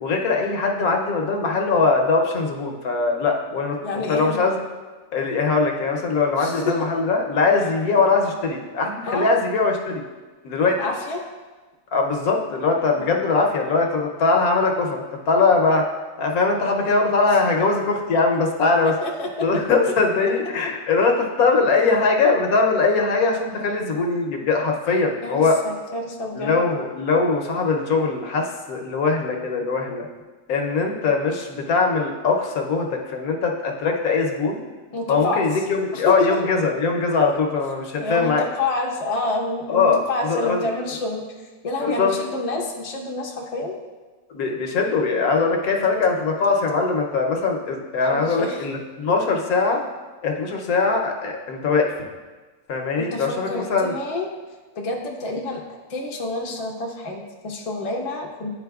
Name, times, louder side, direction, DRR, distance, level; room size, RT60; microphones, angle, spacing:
voice 1, 0.0-4.6 5.1-10.0 10.4-10.8 11.9-15.8 16.2-18.9 19.4-25.6 26.3-30.1 30.5-34.6 35.1-38.4 39.7-40.7 41.8-42.1 44.3-49.8 50.2-51.9 52.7-53.9, left 4 dB, 75° left, 2 dB, 1.2 m, -21 dB
voice 2, 3.8-4.4 6.4-6.9 9.1-9.3 10.8-11.2 13.0-13.1 19.0-19.5 25.2-26.7 34.9-35.4 35.9-36.3 38.0-41.2 41.6-43.8 48.0-48.7 53.0-54.3 54.8-58.5, left 2 dB, 35° left, 0 dB, 0.6 m, -28 dB
10.5 x 4.1 x 2.3 m, 1.3 s
omnidirectional pair, 1.6 m